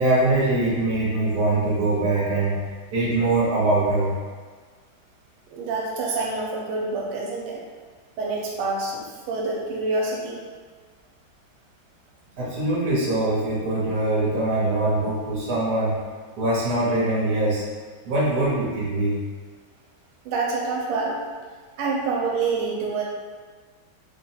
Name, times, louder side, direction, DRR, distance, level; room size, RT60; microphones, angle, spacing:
voice 1, 0.0-2.6 2.9-4.2 12.4-16.0 16.4-17.6 18.0-19.2, right 2 dB, 55° right, -6 dB, 1.4 m, -22 dB
voice 2, 5.5-7.6 8.2-10.4 20.2-21.2 21.8-23.0, right 3 dB, 85° right, -2 dB, 1.5 m, -27 dB
3.5 x 2.3 x 4.4 m, 1.5 s
omnidirectional pair, 2.4 m